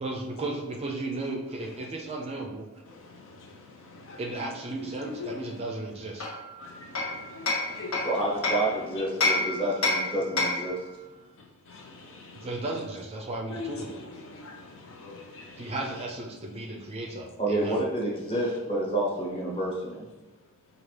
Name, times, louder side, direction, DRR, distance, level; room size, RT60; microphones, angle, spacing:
voice 1, 0.0-2.7 4.2-6.3 12.3-13.9 15.6-17.8, right 2 dB, 25° right, 0 dB, 0.4 m, -34 dB
voice 2, 2.9-4.2 5.2-5.3 6.6-8.1 9.0-9.1 11.4-12.5 13.5-15.7, left 4 dB, 60° left, 2 dB, 0.6 m, -43 dB
Hammer, 6.2-8.7 9.2-10.8, left 2 dB, 80° left, 1.0 m, -28 dB
voice 3, 8.0-10.8 17.4-20.0, right 1 dB, 25° left, -4 dB, 1.0 m, -29 dB
4.8 x 2.4 x 3.2 m, 1.1 s
head